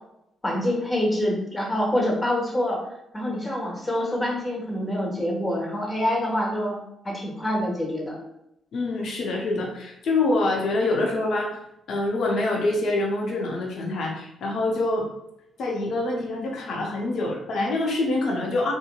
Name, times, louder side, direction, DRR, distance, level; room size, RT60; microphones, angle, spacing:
voice 1, 0.4-2.8 3.1-6.8 7.0-8.1, left 1 dB, 20° left, -2 dB, 1.1 m, -26 dB
voice 2, 8.7-11.6 11.9-15.1 15.6-18.7, left 2 dB, 60° left, 0 dB, 0.6 m, -25 dB
2.8 x 2.7 x 2.2 m, 0.82 s
figure-of-eight pair, 40°, 0 cm